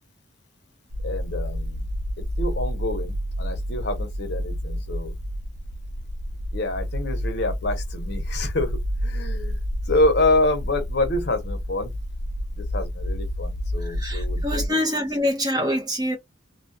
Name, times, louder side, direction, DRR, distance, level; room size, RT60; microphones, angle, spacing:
sound 1, 0.9-14.7, equal, 65° right, 0.5 m, -29 dB
voice 1, 1.0-1.9 2.4-5.1 6.5-9.6 9.9-11.9 12.6-14.8, left 2 dB, 55° left, 0.7 m, -27 dB
voice 2, 13.8-16.2, left 1 dB, 20° right, 0.7 m, -25 dB
2.3 x 2.2 x 2.5 m
head